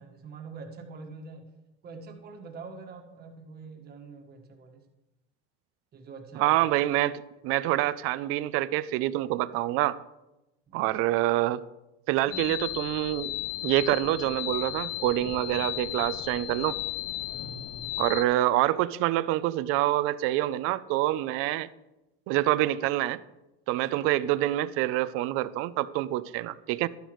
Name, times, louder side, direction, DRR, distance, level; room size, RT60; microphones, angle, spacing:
voice 1, 0.0-1.5 1.8-4.8 5.9-6.6 10.7-10.9 12.2-12.6 17.2-17.9, right 4 dB, 30° right, 4 dB, 1.5 m, -45 dB
voice 2, 6.4-10.0 10.7-11.6 12.1-13.3 13.6-16.8 18.0-21.7 22.3-23.2 23.7-26.9, right 15 dB, 45° right, 16 dB, 0.5 m, -26 dB
sound 1, 12.3-18.2, left 15 dB, 55° left, 0.4 m, -35 dB
12.0 x 10.5 x 3.1 m, 0.99 s
supercardioid pair, 145°, 30 cm